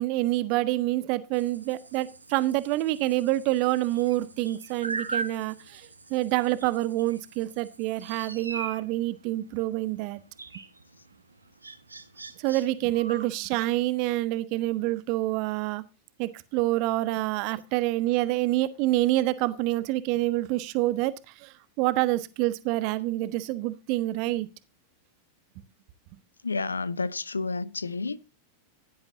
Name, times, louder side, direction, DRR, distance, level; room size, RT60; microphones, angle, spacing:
voice 1, 0.0-5.8 6.1-10.2 12.4-15.8 16.2-21.1 21.4-21.5 21.8-24.5, right 17 dB, 45° right, 1.3 m, -27 dB
sound 1, 1.3-13.5, right 3 dB, 80° right, 1.6 m, -41 dB
voice 2, 26.4-28.2, left 4 dB, 75° left, 0.8 m, -30 dB
16.5 x 11.5 x 2.7 m
figure-of-eight pair, 90°, 0 cm